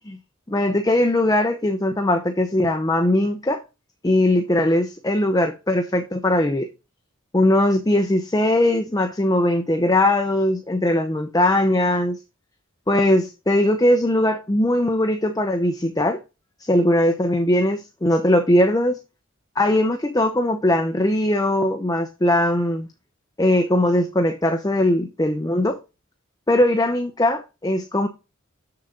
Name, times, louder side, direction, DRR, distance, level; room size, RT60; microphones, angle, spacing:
voice 1, 0.5-3.6 4.0-6.7 7.3-12.2 12.9-16.2 16.6-19.0 19.6-22.9 23.4-25.8 26.5-28.1, left 1 dB, 20° left, 0.7 m, -20 dB
7.0 x 6.8 x 3.8 m
head